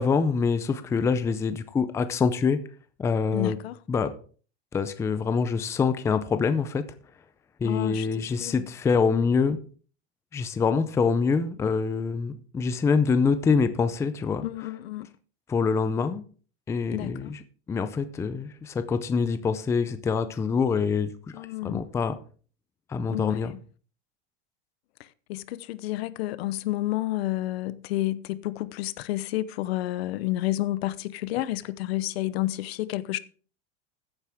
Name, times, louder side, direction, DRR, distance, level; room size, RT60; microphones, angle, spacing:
voice 1, 0.0-2.6 3.0-3.6 3.9-4.1 4.7-6.8 7.6-9.6 10.3-14.4 15.5-16.2 16.7-17.4 17.7-22.1 22.9-23.5, left 5 dB, 10° left, 0.5 m, -25 dB
voice 2, 3.3-3.8 7.6-8.6 14.4-15.1 16.9-17.3 21.3-21.8 23.1-23.6 25.3-33.2, left 16 dB, 70° left, 0.9 m, -30 dB
14.5 x 8.1 x 3.5 m
supercardioid pair, 150°, 32 cm